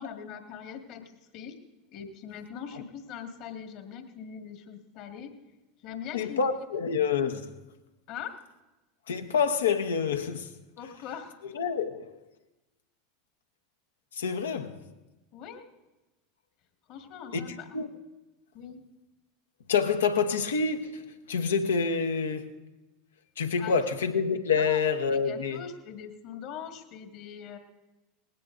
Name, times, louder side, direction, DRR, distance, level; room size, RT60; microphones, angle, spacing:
voice 1, 0.0-1.6 1.9-5.3 5.8-6.5 8.1-8.4 10.8-11.4 15.3-15.7 16.9-17.7 18.5-18.8 23.6-23.8 24.6-24.8 25.3-27.6, left 8 dB, 55° left, 1.9 m, -41 dB
voice 2, 6.1-7.6 9.1-10.5 11.5-12.2 14.1-14.8 17.3-17.9 19.7-22.5 23.4-25.6, left 5 dB, 80° left, 1.1 m, -27 dB
19.5 x 16.5 x 2.6 m
hypercardioid pair, 85°, 0 cm